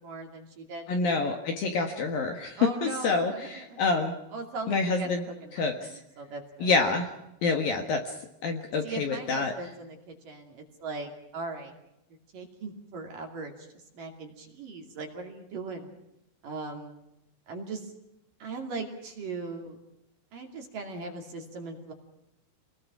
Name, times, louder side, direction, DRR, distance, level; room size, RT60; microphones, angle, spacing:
voice 1, 0.0-0.9 2.6-3.8 4.3-6.7 8.8-11.7 12.3-13.7 13.9-15.9 16.4-17.0 17.5-17.9 18.4-19.8 20.3-21.9, right 3 dB, 50° right, 2 dB, 3.6 m, -39 dB
voice 2, 0.9-4.1 4.7-5.2 5.5-5.7 6.6-7.1 7.4-8.0 8.4-9.5, left 4 dB, 60° left, 4 dB, 2.7 m, -27 dB
28.5 x 20.5 x 6.1 m, 0.86 s
omnidirectional pair, 5.8 m